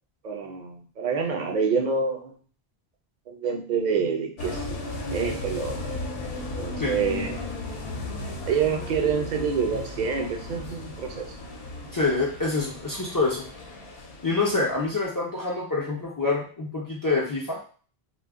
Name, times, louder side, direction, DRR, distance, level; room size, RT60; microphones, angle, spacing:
voice 1, 0.2-2.3 3.3-5.8 6.4-7.4 8.5-11.3, right 6 dB, 55° right, 3 dB, 0.5 m, -27 dB
sound 1, 4.4-15.1, left 2 dB, 70° left, 0.8 m, -35 dB
voice 2, 11.9-13.4 14.2-17.6, left 3 dB, 35° left, -4 dB, 0.3 m, -26 dB
2.1 x 2.0 x 3.5 m, 0.41 s
omnidirectional pair, 1.1 m